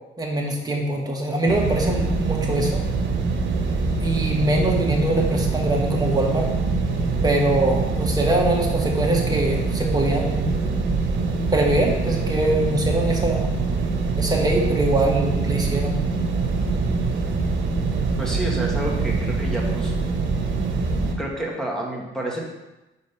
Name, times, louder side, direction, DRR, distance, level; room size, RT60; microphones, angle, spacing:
voice 1, 0.2-2.8 4.0-6.5 7.2-10.5 11.5-13.5 14.2-16.0, right 1 dB, 20° right, -2 dB, 1.6 m, -23 dB
sound 1, 1.5-21.1, right 4 dB, 70° right, 1.1 m, -24 dB
voice 2, 18.2-19.9 21.2-22.4, right 1 dB, 5° left, -2 dB, 1.7 m, -29 dB
5.2 x 4.2 x 5.5 m, 1.0 s
cardioid pair, 90°, 20 cm